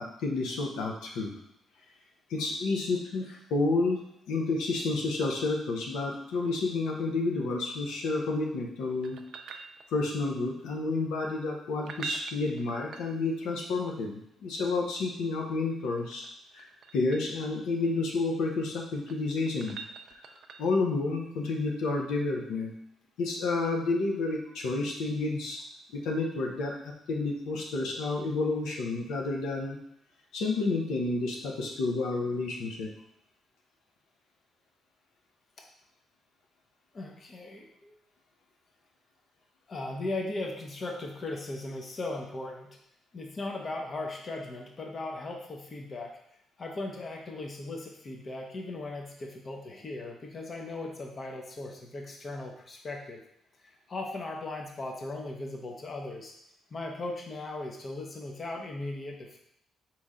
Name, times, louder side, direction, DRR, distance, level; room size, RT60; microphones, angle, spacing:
voice 1, 0.0-1.3 2.3-4.0 4.3-9.2 9.9-16.3 16.5-19.8 20.6-22.7 23.2-25.6 25.9-29.8 30.3-32.9, left 3 dB, 90° left, -1 dB, 0.8 m, -30 dB
sound 1, 9.0-10.3 11.7-13.6 15.7-17.4 18.8-20.9 23.6-23.7, right 5 dB, 65° right, 0.4 m, -44 dB
voice 2, 36.9-37.9 39.7-42.7 43.1-46.1 46.6-53.2 53.9-56.3 56.7-59.4, left 2 dB, 40° left, 1 dB, 0.7 m, -38 dB
4.1 x 3.1 x 3.7 m, 0.73 s
cardioid pair, 90°, 0 cm